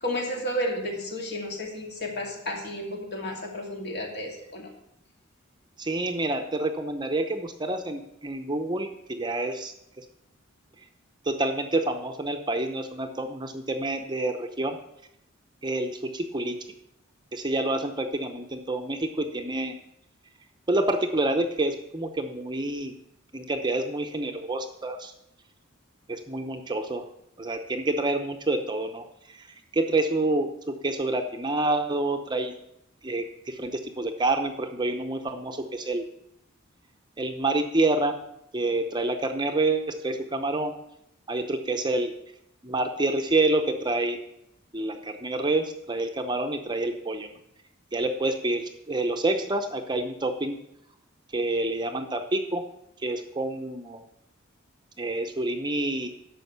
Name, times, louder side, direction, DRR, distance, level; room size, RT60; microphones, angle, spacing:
voice 1, 0.0-4.7, equal, 55° left, 0 dB, 2.5 m, -32 dB
voice 2, 5.8-10.0 11.2-14.8 15.6-16.6 17.3-19.7 20.7-23.0 23.3-25.1 26.1-27.1 27.4-32.5 33.0-36.0 37.2-38.2 38.5-40.7 41.3-42.1 42.6-44.2 44.7-47.3 47.9-50.6 51.3-52.6 53.0-54.1 55.0-56.1, right 2 dB, 20° right, 6 dB, 0.7 m, -28 dB
11.0 x 6.4 x 6.8 m, 0.80 s
head